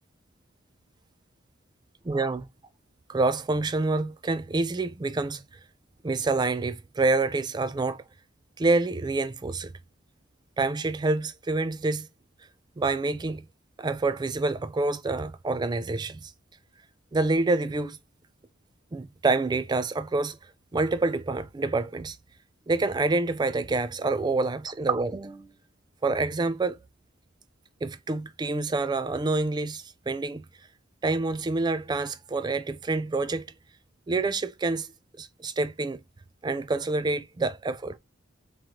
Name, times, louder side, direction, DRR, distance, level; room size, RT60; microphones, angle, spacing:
voice 1, 2.0-2.5 3.1-5.4 6.0-8.0 8.6-9.7 10.6-12.1 12.8-13.5 13.8-16.3 17.1-18.0 18.9-22.2 22.7-25.5 26.0-26.8 27.8-30.5 31.0-33.5 34.1-36.0 36.4-38.0, right 3 dB, 20° right, 0.3 m, -27 dB
3.7 x 3.1 x 2.9 m
head